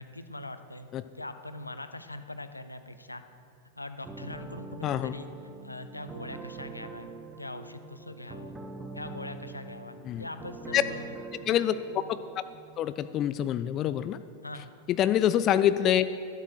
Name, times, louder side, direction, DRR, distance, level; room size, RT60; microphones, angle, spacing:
voice 1, 0.0-0.9 1.1-3.2 3.8-5.3 5.6-7.1 7.4-8.6 8.9-11.1 14.4-14.7, left 2 dB, 85° left, 10 dB, 0.6 m, -42 dB
sound 1, 4.0-12.5, right 3 dB, 15° right, 1.0 m, -44 dB
voice 2, 4.8-5.1 10.1-10.2 10.7-10.8 11.5-11.7 12.1-12.2 12.8-14.2 15.0-16.1, left 11 dB, 35° left, 13 dB, 0.3 m, -25 dB
12.0 x 8.1 x 6.4 m, 2.5 s
figure-of-eight pair, 90°, 0 cm